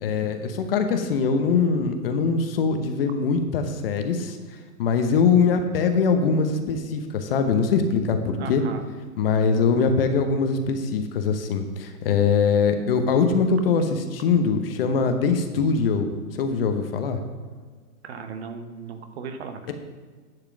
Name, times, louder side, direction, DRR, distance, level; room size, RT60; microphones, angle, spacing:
voice 1, 0.0-4.4 4.8-8.6 9.2-17.2, left 5 dB, 40° left, 7 dB, 0.9 m, -22 dB
voice 2, 8.4-8.9 18.0-19.7, right 5 dB, 45° right, 7 dB, 1.0 m, -36 dB
11.0 x 4.9 x 5.9 m, 1.5 s
hypercardioid pair, 140°, 46 cm